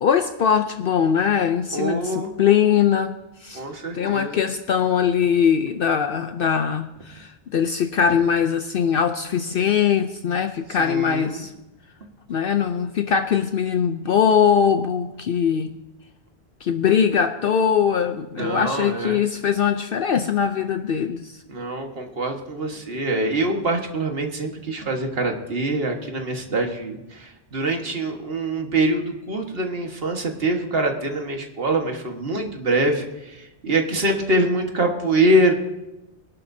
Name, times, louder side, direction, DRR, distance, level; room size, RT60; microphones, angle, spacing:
voice 1, 0.0-3.6 3.9-11.5 12.3-15.8 16.6-21.4, left 7 dB, 65° left, 8 dB, 0.8 m, -21 dB
voice 2, 1.7-2.3 3.5-4.3 10.8-11.4 18.4-19.2 21.5-35.5, right 1 dB, 65° right, 3 dB, 1.8 m, -24 dB
22.5 x 11.5 x 2.7 m, 0.99 s
omnidirectional pair, 1.1 m